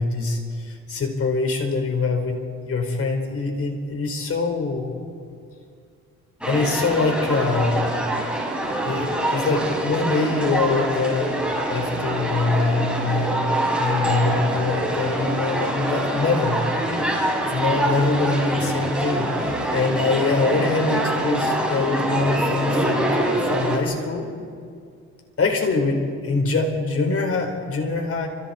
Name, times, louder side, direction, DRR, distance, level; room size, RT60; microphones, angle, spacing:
voice 1, 0.0-2.4 2.6-4.9 6.5-8.0 8.8-11.4 11.7-13.5 13.8-16.6 17.4-24.3 25.4-28.3, left 3 dB, 50° left, 4 dB, 4.6 m, -24 dB
sound 1, 6.4-23.8, right 1 dB, 5° right, 6.9 m, -24 dB
30.0 x 27.0 x 4.5 m, 2.3 s
cardioid pair, 90°, 30 cm